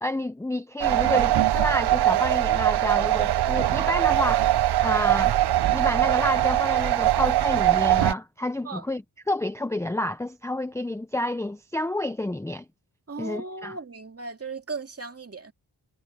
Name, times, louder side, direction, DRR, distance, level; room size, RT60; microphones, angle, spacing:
voice 1, 0.0-4.5 4.8-5.3 5.7-9.0 9.3-12.6 13.2-13.8, left 1 dB, 5° left, 0.6 m, -29 dB
sound 1, 0.8-8.1, right 13 dB, 65° right, 0.5 m, -22 dB
voice 2, 13.1-15.5, right 4 dB, 35° right, 2.5 m, -37 dB
wide cardioid pair, 165°, 42 cm